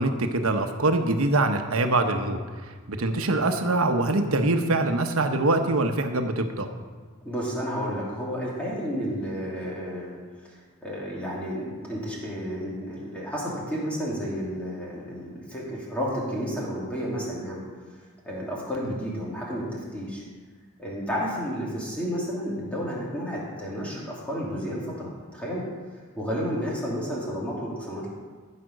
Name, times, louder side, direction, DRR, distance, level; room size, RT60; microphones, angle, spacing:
voice 1, 0.0-2.4 2.9-6.7, right 2 dB, 80° right, 6 dB, 1.0 m, -24 dB
voice 2, 7.2-10.2 10.4-17.6 18.2-20.2 20.8-25.6 26.2-28.1, equal, 5° left, -5 dB, 2.6 m, -31 dB
14.0 x 5.1 x 6.4 m, 1.5 s
head